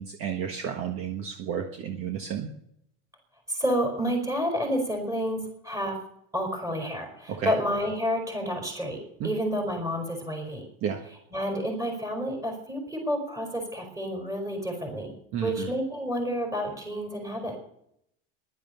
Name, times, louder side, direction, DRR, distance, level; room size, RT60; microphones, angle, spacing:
voice 1, 0.0-2.5 7.3-7.5 9.2-9.3 10.8-11.0 15.3-15.7, right 8 dB, 40° right, 3 dB, 1.6 m, -31 dB
voice 2, 3.5-6.0 6.3-10.7 11.3-15.1 15.4-17.6, equal, 10° right, 2 dB, 5.1 m, -30 dB
15.0 x 11.5 x 6.9 m, 0.74 s
cardioid pair, 160°, 35 cm